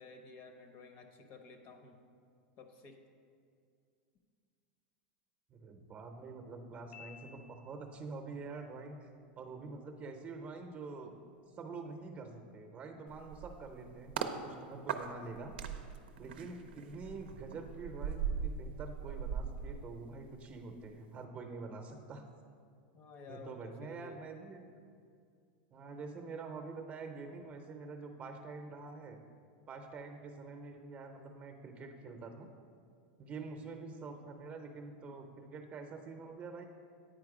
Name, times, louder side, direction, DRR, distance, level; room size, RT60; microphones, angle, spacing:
voice 1, 0.0-2.0 2.6-3.0 22.9-24.2, left 4 dB, 45° left, 6 dB, 0.7 m, -53 dB
voice 2, 5.5-9.1 9.4-11.1 11.6-15.5 16.2-22.3 23.3-24.6 25.7-29.2 29.7-32.5 33.2-36.6, right 4 dB, 25° right, 5 dB, 0.7 m, -46 dB
Piano, 6.9-8.0, left 7 dB, 80° left, 1.6 m, -55 dB
sound 1, 13.1-14.4 14.9-20.5 20.8-21.0, right 7 dB, 85° right, 0.5 m, -40 dB
9.0 x 4.4 x 4.9 m, 2.3 s
supercardioid pair, 135°, 5 cm